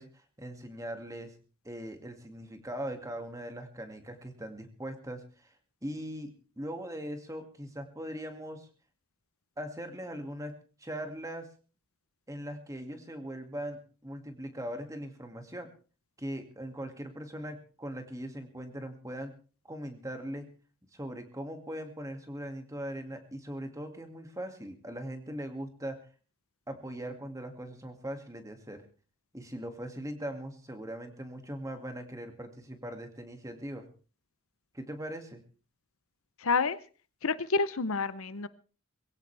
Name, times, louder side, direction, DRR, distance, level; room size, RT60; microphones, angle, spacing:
voice 1, 0.0-1.4 1.6-5.6 5.8-8.7 9.6-11.5 12.3-15.7 16.2-19.3 19.6-20.5 20.9-26.0 26.7-28.8 29.3-33.9 34.7-35.4, right 1 dB, 15° right, 5 dB, 2.2 m, -40 dB
voice 2, 36.4-36.8 37.2-38.5, left 4 dB, 65° left, 15 dB, 0.8 m, -28 dB
22.0 x 16.5 x 3.4 m, 0.38 s
head